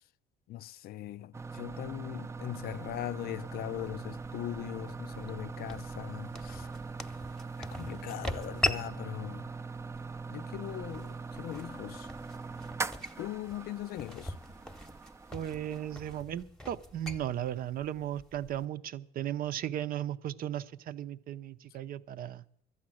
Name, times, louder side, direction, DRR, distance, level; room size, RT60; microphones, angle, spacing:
voice 1, 0.5-6.7 7.6-9.5 10.3-12.1 13.2-14.3, left 14 dB, 65° left, 0.4 m, -40 dB
sound 1, 1.3-16.2, right 4 dB, 15° right, 0.5 m, -42 dB
sound 2, 2.5-18.6, left 2 dB, 5° left, 1.0 m, -42 dB
voice 2, 15.3-22.4, right 11 dB, 60° right, 0.7 m, -36 dB
12.5 x 8.6 x 7.6 m
cardioid pair, 110°, 17 cm